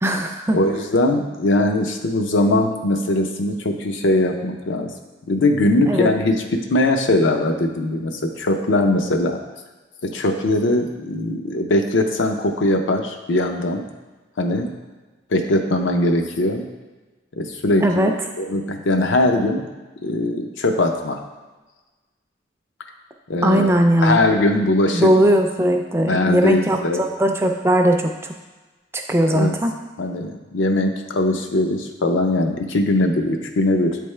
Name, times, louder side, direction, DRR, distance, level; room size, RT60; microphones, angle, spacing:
voice 1, 0.0-0.6 5.9-6.1 17.8-18.1 23.4-24.2 24.9-28.1 28.9-29.7, right 1 dB, 15° right, 4 dB, 0.3 m, -18 dB
voice 2, 0.5-4.9 5.3-9.4 10.0-13.9 14.4-14.7 15.3-16.7 17.4-19.7 20.0-21.2 23.3-23.7 24.0-25.1 26.0-27.1 29.2-29.5 30.0-34.0, left 1 dB, 80° left, 4 dB, 0.6 m, -20 dB
8.5 x 3.4 x 3.2 m, 1.2 s
head